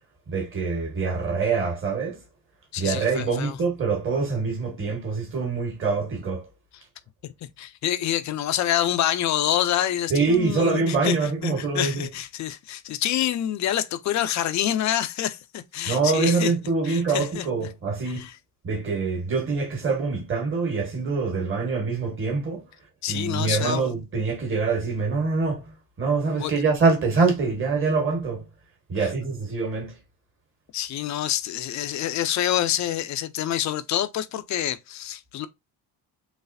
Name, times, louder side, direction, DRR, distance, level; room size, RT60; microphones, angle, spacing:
voice 1, 0.3-2.2 2.8-6.5 10.1-12.1 15.9-18.3 18.6-22.6 23.1-28.5 28.9-29.9, right 4 dB, 30° right, 1.4 m, -25 dB
voice 2, 2.7-3.6 7.2-16.5 16.8-17.5 18.2-18.3 23.0-23.9 26.4-26.5 29.0-29.1 30.7-35.5, left 12 dB, 45° left, 0.5 m, -27 dB
4.0 x 3.2 x 2.6 m
cardioid pair, 180°, 40 cm